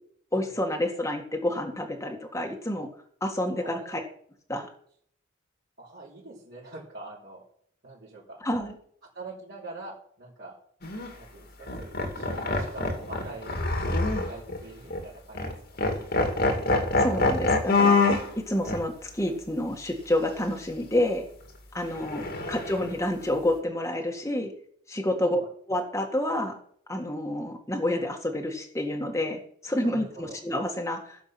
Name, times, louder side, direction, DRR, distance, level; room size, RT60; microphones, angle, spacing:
voice 1, 0.3-2.9 3.2-4.0 4.5-4.7 8.4-8.7 17.0-21.2 21.7-24.5 24.9-25.4 25.7-26.6 26.9-31.2, left 1 dB, 15° left, 1 dB, 1.8 m, -29 dB
voice 2, 3.6-4.0 5.8-7.4 7.8-8.4 9.1-10.6 11.1-15.5 22.3-22.6 25.2-25.5 29.8-30.4, right 2 dB, 50° right, -8 dB, 3.6 m, -44 dB
sound 1, 10.8-11.1 11.7-14.6 14.9-15.0 15.3-15.5 15.8-18.3 18.7-18.8 22.0-22.9, left 3 dB, 50° left, 2.2 m, -25 dB
16.5 x 7.1 x 5.9 m, 0.62 s
head